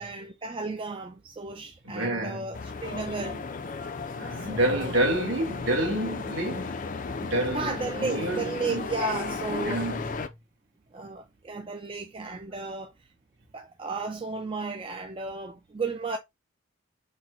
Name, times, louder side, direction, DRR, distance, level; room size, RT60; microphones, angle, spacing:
voice 1, 0.0-3.4 4.5-4.9 7.5-9.9 10.9-12.9 13.5-16.2, right 3 dB, 25° right, 0.4 m, -34 dB
voice 2, 1.8-2.6 4.1-6.8 7.2-8.8 9.6-10.0, right 1 dB, 65° right, 1.6 m, -28 dB
sound 1, 2.5-10.3, left 4 dB, 40° left, 0.4 m, -35 dB
4.1 x 2.2 x 3.8 m
head